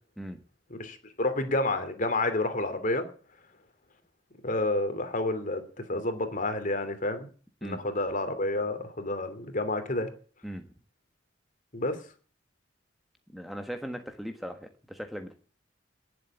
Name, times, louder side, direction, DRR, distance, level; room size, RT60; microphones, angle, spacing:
voice 1, 0.7-3.0 4.4-5.6 5.9-7.3 7.6-10.1 11.7-12.0, left 2 dB, 45° left, 9 dB, 2.9 m, -29 dB
voice 2, 13.3-15.3, equal, ahead, 5 dB, 1.4 m, -38 dB
18.5 x 7.9 x 7.2 m, 0.39 s
head